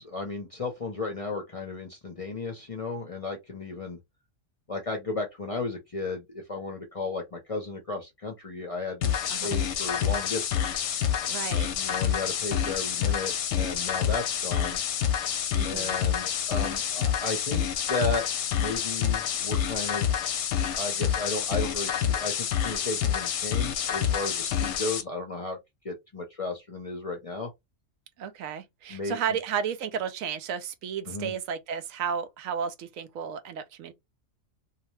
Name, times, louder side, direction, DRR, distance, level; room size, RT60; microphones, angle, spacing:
voice 1, 0.0-4.0 4.7-9.1 9.4-10.8 11.8-14.8 15.6-17.6 17.9-20.3 20.8-25.6 25.8-27.5 28.9-29.2 31.1-31.3, left 3 dB, 40° left, 0.5 m, -34 dB
sound 1, 9.0-25.0, left 9 dB, 70° left, 0.8 m, -28 dB
voice 2, 11.3-11.7 15.5-16.0 28.2-33.9, right 7 dB, 85° right, 1.0 m, -33 dB
2.8 x 2.1 x 3.0 m
omnidirectional pair, 1.3 m